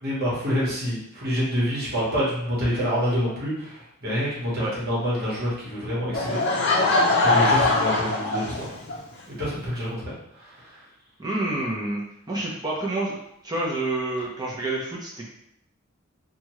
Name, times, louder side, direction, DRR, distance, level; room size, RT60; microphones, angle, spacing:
voice 1, 0.0-6.4 7.2-8.7 9.3-10.8, equal, 50° right, -6 dB, 1.2 m, -27 dB
Laughter / Crowd, 6.1-9.0, left 2 dB, 55° left, 0.5 m, -22 dB
voice 2, 11.2-12.0 12.3-13.2 13.4-15.3, right 2 dB, 20° right, -4 dB, 0.7 m, -28 dB
2.9 x 2.3 x 3.0 m, 0.75 s
head